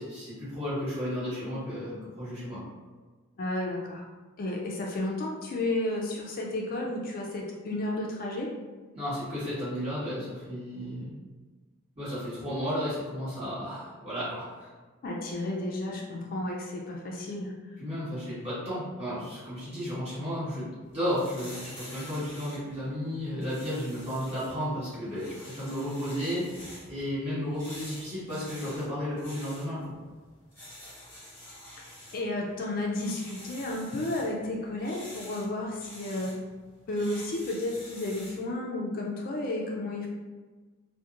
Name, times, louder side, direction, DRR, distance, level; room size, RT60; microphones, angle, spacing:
voice 1, 0.0-2.6 8.9-11.1 11.9-14.7 17.8-29.9, equal, 30° right, -11 dB, 1.4 m, -33 dB
voice 2, 3.4-4.1 4.4-8.5 15.0-17.5 32.1-36.4 36.9-40.1, left 2 dB, 45° left, -1 dB, 0.3 m, -32 dB
sound 1, 20.8-38.5, left 1 dB, 10° left, 1.1 m, -48 dB
2.9 x 2.1 x 2.4 m, 1.3 s
head